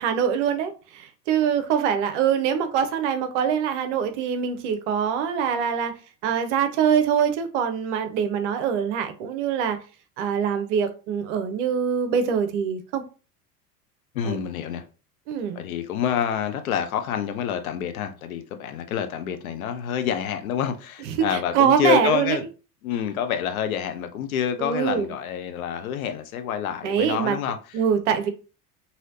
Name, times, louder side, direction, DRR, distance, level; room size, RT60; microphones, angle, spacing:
voice 1, 0.0-5.9 6.2-9.8 10.2-13.0 14.2-14.4 15.3-15.6 21.0-22.4 24.6-25.1 26.8-27.4 27.7-28.3, right 7 dB, 50° right, 0.6 m, -24 dB
voice 2, 14.1-14.8 15.5-22.4 22.8-27.6, left 8 dB, 60° left, 0.6 m, -27 dB
3.1 x 2.7 x 2.6 m
figure-of-eight pair, 75°, 48 cm